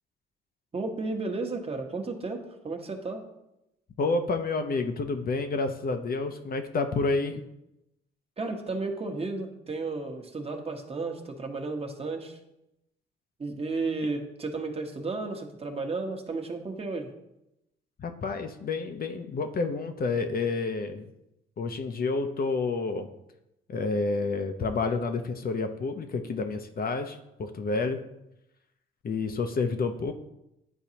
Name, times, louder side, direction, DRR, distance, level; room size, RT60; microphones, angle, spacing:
voice 1, 0.7-3.2 8.4-12.4 13.4-17.1, right 3 dB, 30° right, 3 dB, 1.1 m, -33 dB
voice 2, 4.0-7.4 18.0-21.1 21.6-23.1 23.7-28.0 29.0-30.1, left 3 dB, 45° left, 6 dB, 0.7 m, -29 dB
10.0 x 3.9 x 2.9 m, 0.87 s
cardioid pair, 80°, 21 cm